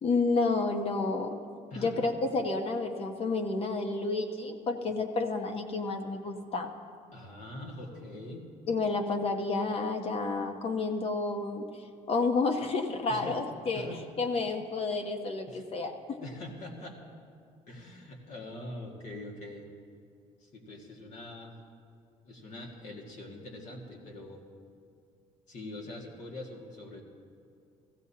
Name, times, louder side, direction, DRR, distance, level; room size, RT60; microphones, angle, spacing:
voice 1, 0.0-1.4 1.8-6.7 8.7-11.7 12.1-13.9 14.2-16.2, left 3 dB, 45° left, 5 dB, 1.0 m, -30 dB
voice 2, 7.1-8.5 13.1-13.4 13.7-14.0 15.5-15.6 16.2-17.0 17.7-19.7 20.4-21.6 22.2-24.4 25.5-27.0, left 1 dB, 60° left, 0 dB, 2.1 m, -43 dB
16.0 x 15.0 x 2.9 m, 2.3 s
cardioid pair, 110°, 14 cm